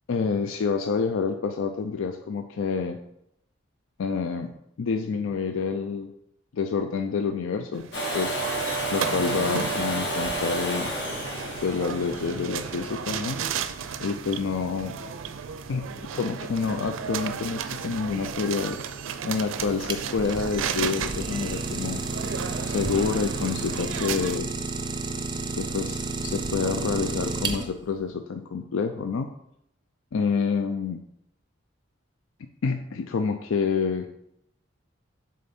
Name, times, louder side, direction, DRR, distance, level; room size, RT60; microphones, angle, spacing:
voice 1, 0.1-3.0 4.0-4.5 4.8-6.1 6.5-8.4 8.9-10.9 11.6-13.4 14.0-15.0 15.7-18.8 19.2-22.0 22.7-24.5 25.6-29.3 30.1-31.0 32.6-34.1, left 5 dB, 85° left, 6 dB, 0.4 m, -28 dB
sound 1, 7.7-24.4, right 7 dB, 80° right, 0.4 m, -34 dB
Domestic sounds home sounds, 7.9-13.7 15.7-15.8, right 1 dB, 60° left, 1.7 m, -31 dB
Idling, 19.6-27.9, right 3 dB, 20° right, 0.5 m, -31 dB
6.8 x 3.8 x 4.2 m, 0.77 s
head